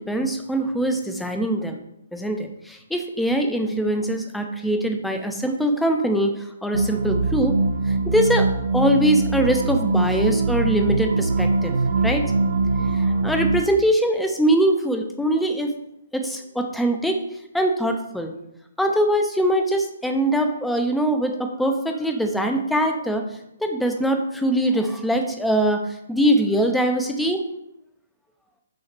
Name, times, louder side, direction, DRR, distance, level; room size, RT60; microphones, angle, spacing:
voice 1, 0.0-1.8 2.1-7.6 7.9-11.7 12.0-12.2 12.8-15.7 16.1-17.2 17.5-18.3 18.8-23.2 23.6-25.8 26.1-27.4, right 1 dB, 5° left, 4 dB, 0.5 m, -22 dB
sound 1, 6.7-13.6, right 3 dB, 65° right, 0.4 m, -22 dB
5.8 x 2.3 x 3.2 m, 0.81 s
hypercardioid pair, 135°, 0 cm